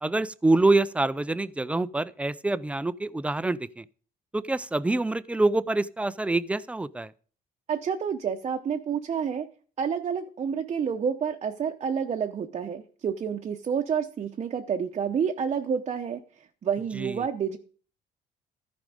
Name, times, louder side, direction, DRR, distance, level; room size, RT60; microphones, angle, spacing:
voice 1, 0.0-3.8 4.3-7.1 16.9-17.2, right 2 dB, 5° right, 0.4 m, -26 dB
voice 2, 7.7-9.5 9.8-16.2 16.6-17.6, right 7 dB, 40° right, 0.8 m, -29 dB
14.0 x 5.2 x 5.0 m
cardioid pair, 110°, 17 cm